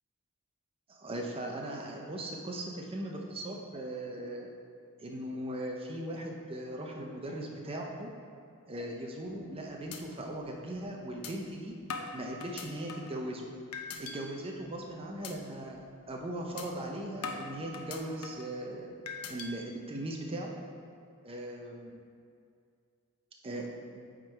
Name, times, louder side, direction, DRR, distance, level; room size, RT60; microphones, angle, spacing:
voice 1, 0.9-4.5 5.0-8.1 8.7-11.8 12.1-13.5 14.0-15.8 16.1-18.9 19.3-20.5 21.3-22.0 23.4-23.7 23.9-24.1, right 1 dB, 25° right, 0 dB, 0.6 m, -39 dB
sound 1, 9.2-9.5 9.9-10.0 10.4-10.5 11.2-11.3 11.9-13.2 13.7-14.2 14.6-14.8 15.2-15.3 15.7-15.9 16.6-16.7 17.2-18.5 19.1-19.5, left 5 dB, 90° left, 0.6 m, -41 dB
7.9 x 3.8 x 4.5 m, 2.3 s
head